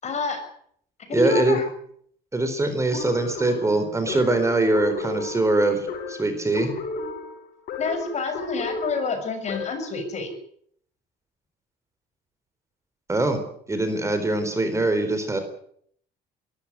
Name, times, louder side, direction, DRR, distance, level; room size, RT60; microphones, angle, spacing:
voice 1, 0.0-0.4 1.1-1.7 7.8-10.3, left 3 dB, 40° left, 6 dB, 6.8 m, -27 dB
voice 2, 1.1-1.6 2.3-6.7 13.1-13.4 13.7-15.4, right 2 dB, 15° right, 8 dB, 4.1 m, -23 dB
sound 1, 2.9-10.0, left 4 dB, 70° left, 5.8 m, -34 dB
22.0 x 14.0 x 9.9 m, 0.65 s
cardioid pair, 110°, 17 cm